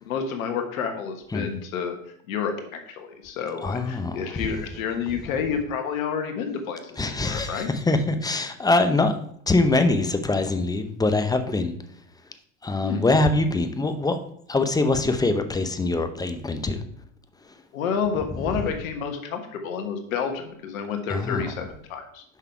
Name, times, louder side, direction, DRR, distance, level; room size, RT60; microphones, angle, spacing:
voice 1, 0.0-2.0 2.3-7.7 12.8-13.1 17.7-22.2, left 6 dB, 80° left, 1.3 m, -30 dB
voice 2, 3.6-4.5 7.0-9.1 9.5-11.7 12.6-14.2 14.5-16.8 21.1-21.5, left 2 dB, 10° left, 0.6 m, -23 dB
6.3 x 5.4 x 4.5 m
hypercardioid pair, 100°, 41 cm